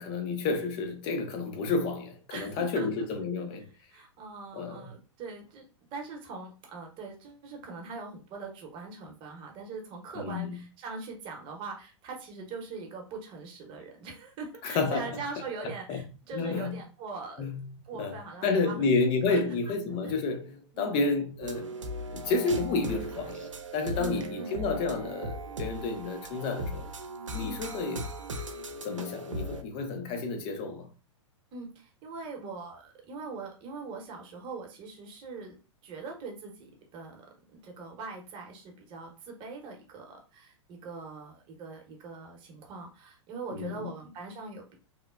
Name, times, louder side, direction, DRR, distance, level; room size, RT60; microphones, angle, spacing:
voice 1, 0.0-3.7 4.5-4.9 10.1-10.6 14.6-15.2 15.6-16.0 16.3-16.8 17.4-18.2 18.4-21.7 22.1-26.9 27.3-28.1 28.8-30.9 43.5-43.9, left 3 dB, 35° left, 0.6 m, -30 dB
voice 2, 2.3-2.9 3.9-17.5 17.8-19.4 19.7-19.8 20.0-20.1 20.7-20.9 24.0-24.5 27.4-27.6 31.5-35.6 35.8-37.3 37.5-44.8, right 4 dB, 35° right, 0.8 m, -42 dB
sound 1, 21.4-29.6, right 1 dB, 80° right, 0.5 m, -38 dB
3.1 x 2.0 x 2.3 m
figure-of-eight pair, 100°, 16 cm